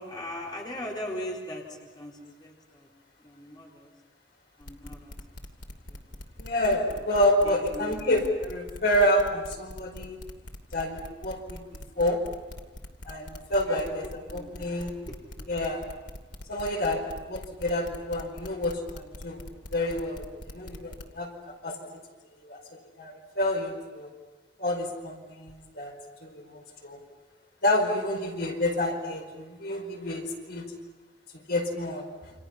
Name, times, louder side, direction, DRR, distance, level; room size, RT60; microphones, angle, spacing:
voice 1, 0.0-2.9 3.2-3.9 4.6-5.2 5.9-6.0 7.4-8.0 13.6-13.9 14.3-14.7 15.1-15.5, left 1 dB, 25° left, -2 dB, 3.9 m, -39 dB
sound 1, 4.6-21.0, left 1 dB, 80° left, 2.6 m, -42 dB
voice 2, 6.4-10.3 10.7-11.6 11.9-12.2 13.0-14.9 15.5-15.8 16.5-19.4 19.7-21.8 22.4-22.6 23.0-24.1 24.6-25.9 26.2-27.0 27.6-30.7 31.3-32.3, left 1 dB, 60° left, 2 dB, 4.8 m, -28 dB
29.5 x 26.5 x 5.8 m, 1.2 s
head